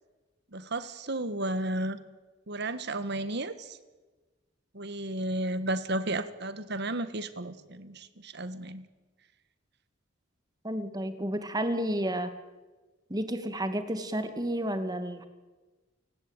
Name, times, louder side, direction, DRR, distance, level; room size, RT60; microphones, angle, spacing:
voice 1, 0.5-2.0 2.5-3.8 4.7-8.9, right 1 dB, 60° right, 13 dB, 1.6 m, -33 dB
voice 2, 10.6-12.3 13.1-15.2, right 1 dB, 20° right, 9 dB, 2.3 m, -31 dB
29.0 x 17.0 x 9.1 m, 1.2 s
head